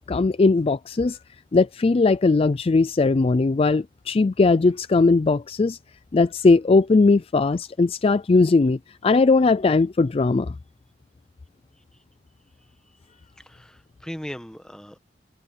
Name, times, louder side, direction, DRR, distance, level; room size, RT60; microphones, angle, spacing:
voice 1, 0.1-1.2 1.5-5.8 6.1-10.5, left 3 dB, 30° left, 0.4 m, -19 dB
voice 2, 13.4-15.0, equal, 5° left, 1.2 m, -38 dB
head